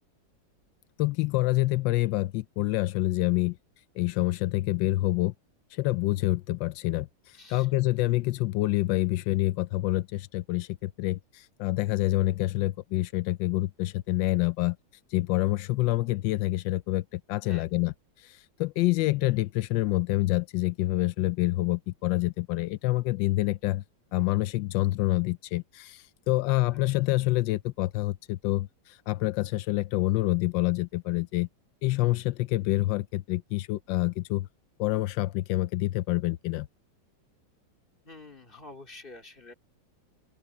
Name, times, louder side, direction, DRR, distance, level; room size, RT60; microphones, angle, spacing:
voice 1, 1.0-3.6 4.0-5.3 5.7-14.8 15.1-23.8 24.1-31.5 31.8-34.5 34.8-36.7, left 17 dB, 90° left, 1.3 m, -27 dB
voice 2, 7.3-7.7 17.4-17.7 26.5-27.0 38.0-39.5, left 2 dB, 30° left, 3.0 m, -48 dB
open air
omnidirectional pair, 2.0 m